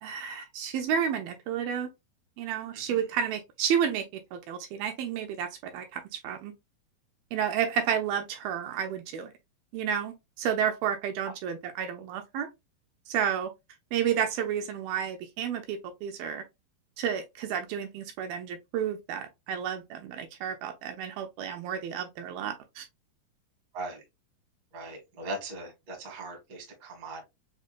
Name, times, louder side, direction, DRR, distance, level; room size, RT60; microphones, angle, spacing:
voice 1, 0.0-1.9 2.4-4.1 4.3-6.5 7.3-9.3 9.7-12.5 13.1-13.5 13.9-16.4 17.0-22.9, right 8 dB, 80° right, 2.2 m, -31 dB
voice 2, 24.7-27.2, right 2 dB, 55° right, 0.9 m, -39 dB
6.2 x 2.2 x 2.4 m
omnidirectional pair, 4.5 m